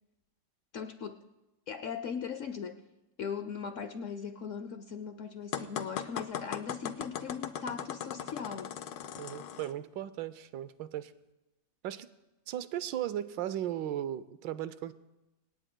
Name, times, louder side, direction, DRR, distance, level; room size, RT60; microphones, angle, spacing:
voice 1, 0.7-1.2 1.7-2.8 3.2-8.7, left 6 dB, 65° left, 9 dB, 0.7 m, -39 dB
sound 1, 5.5-9.7, left 9 dB, 80° left, 1.4 m, -39 dB
voice 2, 9.2-11.1 11.8-12.1 12.5-14.9, right 11 dB, 90° right, 14 dB, 1.4 m, -36 dB
25.5 x 17.5 x 2.2 m, 1.0 s
omnidirectional pair, 1.9 m